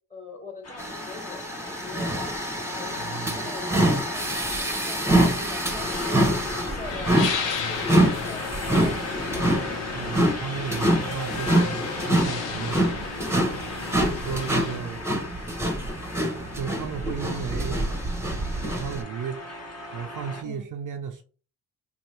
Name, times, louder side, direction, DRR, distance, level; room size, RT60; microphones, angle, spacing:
voice 1, 0.1-2.3 2.8-3.1 3.3-7.1 7.5-9.7 14.6-14.8 20.4-20.6, left 3 dB, 15° left, 1.4 m, -43 dB
sound 1, 0.6-20.4, left 2 dB, 35° left, 1.1 m, -38 dB
sound 2, 0.8-19.0, right 1 dB, 5° right, 0.8 m, -26 dB
voice 2, 3.0-3.5 9.9-13.0 14.0-15.0 16.5-17.9 18.6-19.4 19.9-21.2, right 7 dB, 45° right, 0.5 m, -34 dB
sound 3, 5.8-14.8, left 5 dB, 80° left, 0.8 m, -34 dB
2.7 x 2.2 x 3.2 m
supercardioid pair, 55°, 44 cm